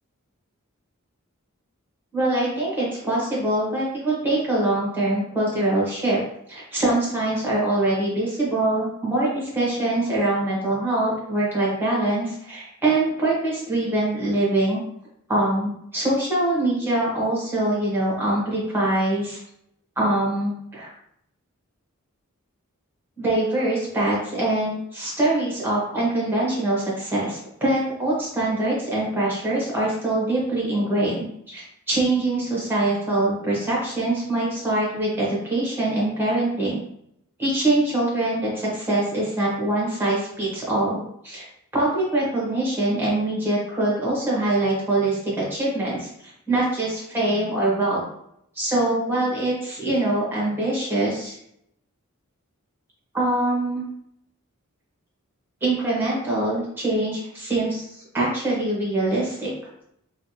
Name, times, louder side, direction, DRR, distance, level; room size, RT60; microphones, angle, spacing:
voice 1, 2.1-6.2 6.5-14.8 15.3-19.4 20.0-20.9 23.2-36.8 37.4-41.4 41.7-46.1 46.5-48.0 48.5-51.4 53.1-53.9 55.6-57.8 58.1-59.5, right 2 dB, 10° right, -6 dB, 1.2 m, -23 dB
3.4 x 2.3 x 2.8 m, 0.74 s
head